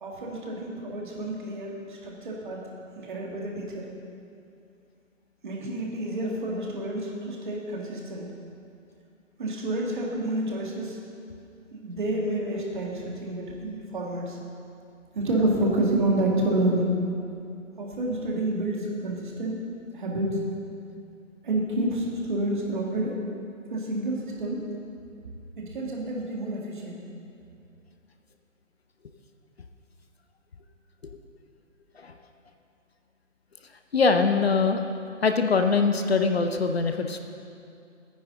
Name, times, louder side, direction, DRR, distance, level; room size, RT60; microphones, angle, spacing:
voice 1, 0.0-2.7 3.0-3.9 5.4-8.2 9.4-11.0 11.7-14.4 15.1-16.9 17.8-20.4 21.4-23.2 23.7-24.6 25.6-27.0, right 1 dB, 35° right, -2 dB, 1.8 m, -29 dB
voice 2, 33.9-34.8 35.2-37.2, left 4 dB, 50° left, 6 dB, 0.7 m, -23 dB
15.5 x 9.6 x 3.8 m, 2.5 s
hypercardioid pair, 170°, 40 cm